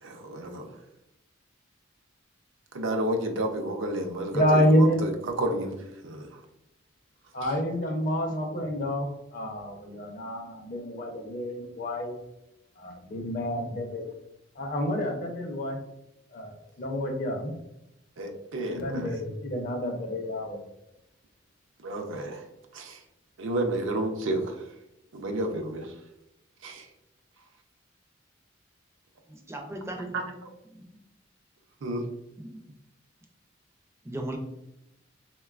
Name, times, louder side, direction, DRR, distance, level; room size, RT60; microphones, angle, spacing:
voice 1, 0.0-0.7 2.7-5.8 6.0-6.4 18.2-19.2 21.8-22.4 22.7-23.0 23.4-24.6 25.1-25.9 26.6-26.9 30.1-30.3 31.8-32.0, right 1 dB, 70° right, 3 dB, 0.5 m, -31 dB
voice 2, 4.3-5.0 7.3-12.2 12.8-14.0 14.6-15.8 16.3-17.5 18.7-20.6, equal, 45° left, 2 dB, 0.5 m, -28 dB
voice 3, 29.3-30.2 30.7-30.8 32.4-32.6 34.0-34.4, right 1 dB, 15° right, 2 dB, 0.4 m, -37 dB
3.7 x 2.2 x 2.3 m, 0.87 s
head